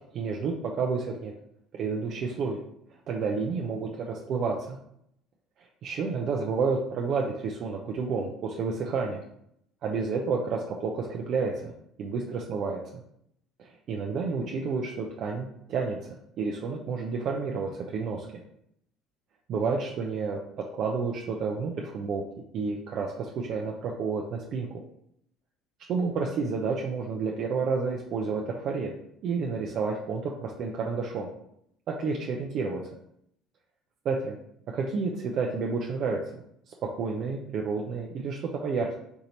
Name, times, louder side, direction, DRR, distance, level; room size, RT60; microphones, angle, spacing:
voice 1, 0.1-1.3 1.7-2.6 3.1-4.8 5.8-9.2 9.8-11.7 12.0-13.0 13.6-18.3 19.5-20.4 20.8-22.2 22.5-24.7 25.9-28.9 29.2-31.3 31.9-32.8 34.0-34.4 34.7-36.2 36.7-38.9, right 4 dB, 55° right, 0 dB, 0.6 m, -30 dB
4.7 x 2.8 x 4.0 m, 0.73 s
supercardioid pair, 90°, 0 cm